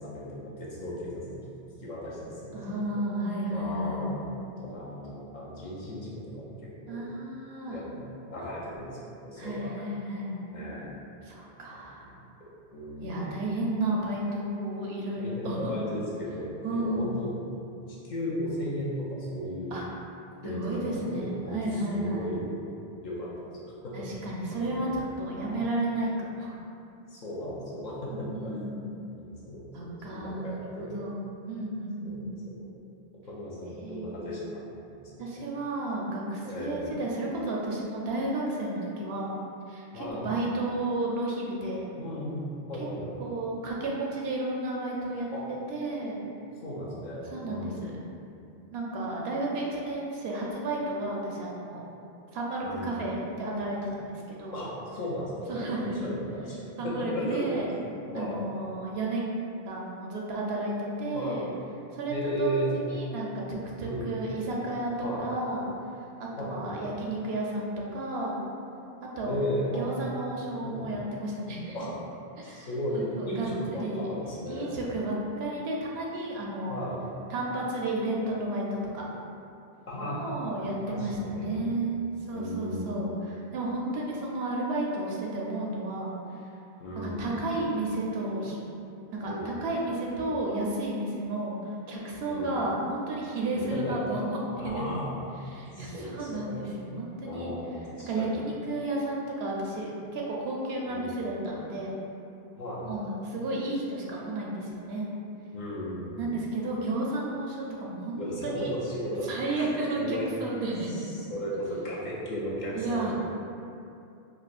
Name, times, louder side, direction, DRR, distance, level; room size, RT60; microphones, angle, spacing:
voice 1, 0.0-1.4 1.8-2.8 3.5-4.3 4.6-7.0 7.7-9.7 10.5-11.0 11.7-13.4 15.2-17.3 17.8-19.8 20.4-22.5 23.0-24.1 24.5-24.9 25.4-25.6 27.1-28.6 29.1-29.7 30.1-31.0 32.0-32.7 33.2-34.6 34.9-35.3 36.4-36.9 39.9-40.3 42.0-43.2 45.3-45.4 46.6-47.8 52.6-53.0 54.5-57.5 58.0-58.4 61.1-61.4 62.1-62.7 63.8-64.2 65.0-65.3 66.4-66.9 69.2-69.9 70.6-71.0 71.7-71.9 72.5-74.7 76.7-77.0 79.9-81.7 82.3-82.9 86.8-87.3 89.2-89.5 92.3-92.5 93.5-94.0 94.2-94.3 94.6-95.1 95.7-96.7 97.2-98.4 100.9-101.1 102.6-102.9 105.5-106.3 108.2-110.3 110.9-113.1, equal, 50° left, -7 dB, 0.7 m, -36 dB
voice 2, 2.5-4.0 6.9-7.8 9.4-10.4 11.2-12.1 13.0-15.7 16.6-17.2 19.7-19.9 20.4-22.3 23.9-26.6 28.1-28.9 29.7-31.2 31.5-32.3 33.8-34.3 35.2-39.3 39.7-41.9 43.2-46.2 47.3-47.9 48.7-51.8 52.3-54.6 55.5-56.1 56.8-57.7 58.1-59.3 59.6-61.5 61.9-64.9 65.2-65.6 66.2-68.4 69.0-71.9 72.4-72.7 72.9-74.1 74.5-76.9 77.3-79.1 80.0-82.0 82.3-86.4 87.0-88.6 89.1-91.6 91.9-94.4 94.6-94.9 95.5-97.5 98.0-101.9 102.8-105.1 106.2-108.7 109.2-111.0 112.7-113.1, right 2 dB, 85° right, -3 dB, 0.9 m, -32 dB
4.6 x 2.0 x 2.5 m, 2.6 s
omnidirectional pair, 1.0 m